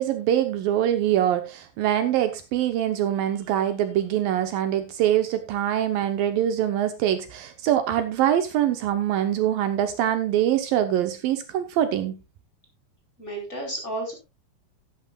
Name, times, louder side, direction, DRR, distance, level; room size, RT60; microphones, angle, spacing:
voice 1, 0.0-12.2, right 11 dB, 75° right, 2.6 m, -24 dB
voice 2, 13.2-14.1, right 1 dB, 15° left, 4.7 m, -32 dB
14.5 x 11.5 x 2.4 m
omnidirectional pair, 4.4 m